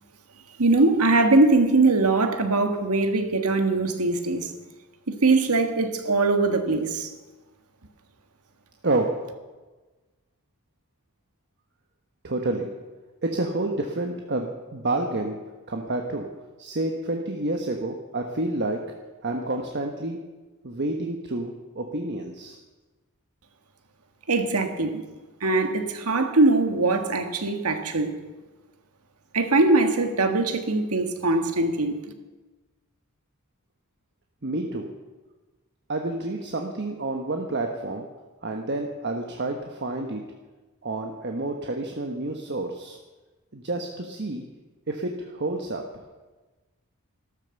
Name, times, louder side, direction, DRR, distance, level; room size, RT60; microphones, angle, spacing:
voice 1, 0.6-4.5 5.1-7.1 24.3-25.0 25.4-28.1 29.3-31.9, right 3 dB, 85° right, 7 dB, 1.6 m, -21 dB
voice 2, 8.8-9.2 12.2-12.7 13.2-15.4 15.7-16.3 16.6-18.8 19.2-20.2 20.6-22.6 34.4-34.9 35.9-38.1 38.4-40.2 40.8-43.0 43.5-44.4 44.9-45.8, right 2 dB, 50° right, 3 dB, 1.2 m, -29 dB
13.0 x 13.0 x 7.1 m, 1.2 s
head